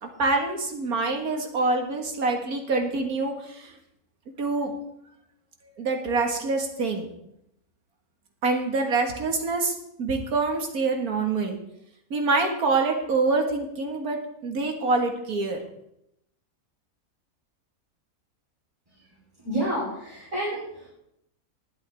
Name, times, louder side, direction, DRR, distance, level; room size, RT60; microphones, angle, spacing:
voice 1, 0.0-3.7 4.4-4.7 5.8-7.1 8.4-11.6 12.1-15.6, right 3 dB, 90° right, 3 dB, 2.2 m, -26 dB
voice 2, 19.4-20.9, right 1 dB, 25° right, -6 dB, 3.7 m, -30 dB
19.5 x 8.4 x 3.5 m, 0.77 s
omnidirectional pair, 1.5 m